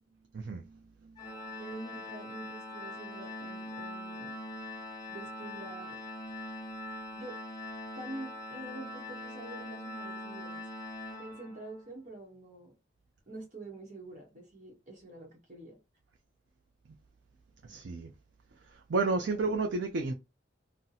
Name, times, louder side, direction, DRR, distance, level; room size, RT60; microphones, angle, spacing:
voice 1, 0.3-1.2 17.6-18.1 18.7-20.1, right 3 dB, 70° right, 0.4 m, -32 dB
Organ, 1.2-11.9, left 1 dB, 20° left, 0.6 m, -42 dB
voice 2, 1.6-4.4 5.1-6.1 7.1-7.4 8.0-10.7 11.2-12.7 13.3-15.8 19.2-19.4, right 2 dB, 40° right, 0.9 m, -46 dB
2.7 x 2.1 x 3.9 m
head